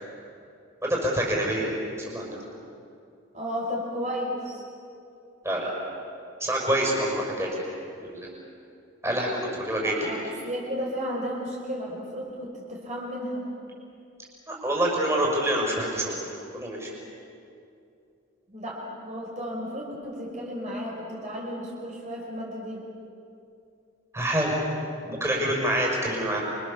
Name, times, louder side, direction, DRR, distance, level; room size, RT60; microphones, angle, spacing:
voice 1, 0.8-1.7 2.1-2.4 5.4-5.7 6.4-7.6 8.1-8.3 9.0-10.4 14.5-16.2 16.5-16.9 24.1-24.5 25.0-26.4, right 1 dB, 15° right, -3 dB, 5.9 m, -26 dB
voice 2, 3.3-4.6 9.8-13.5 18.5-22.9, equal, 35° right, -3 dB, 5.2 m, -33 dB
29.0 x 25.0 x 7.2 m, 2.6 s
head